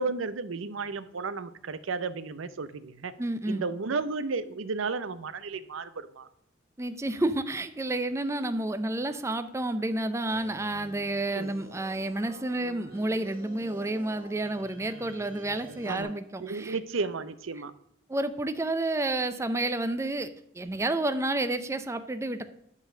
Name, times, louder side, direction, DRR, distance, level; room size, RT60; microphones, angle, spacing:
voice 1, 0.0-3.1 3.5-6.3 11.3-11.5 15.9-16.1 16.4-17.7, right 4 dB, 90° right, 13 dB, 0.6 m, -33 dB
voice 2, 3.2-3.6 6.8-16.8 18.1-20.3 20.5-22.4, right 2 dB, 15° right, 10 dB, 0.4 m, -30 dB
sound 1, 9.1-9.3 9.6-9.8 10.3-16.0, right 2 dB, 50° right, 2.4 m, -48 dB
9.6 x 4.1 x 6.6 m, 0.76 s
head